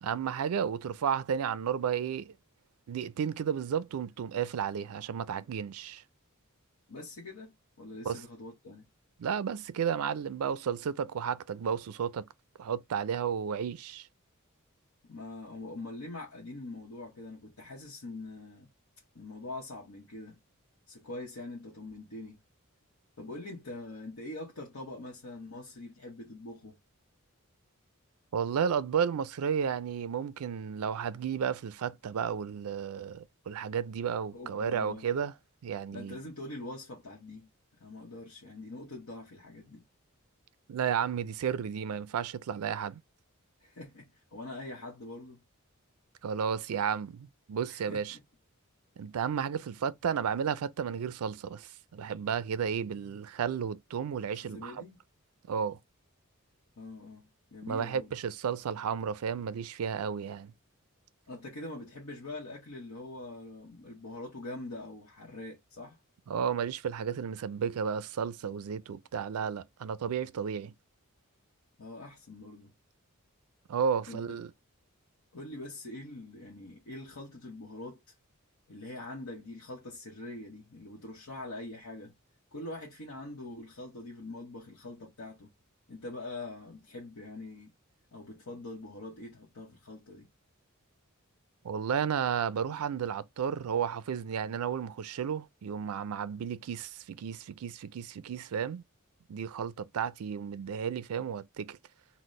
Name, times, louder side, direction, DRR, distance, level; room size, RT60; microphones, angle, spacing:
voice 1, 0.0-2.3 2.9-6.0 8.1-8.2 9.2-12.3 12.6-14.1 28.3-35.3 35.6-36.2 40.7-43.0 46.2-48.2 49.0-54.8 55.5-55.8 57.7-60.5 66.3-70.7 73.7-74.5 91.6-98.8 99.3-101.8, right 7 dB, 85° right, 0.4 m, -33 dB
voice 2, 6.9-8.9 15.0-18.7 19.1-20.4 20.9-22.4 23.2-26.8 34.3-35.1 35.9-37.5 37.8-39.8 43.6-45.4 47.7-48.0 54.3-55.0 56.8-58.1 61.3-66.0 71.8-72.7 74.1-74.4 75.3-78.0 78.7-82.1 82.5-85.5 85.9-87.7 88.1-90.3, left 2 dB, 85° left, 0.9 m, -44 dB
4.0 x 2.1 x 3.1 m
head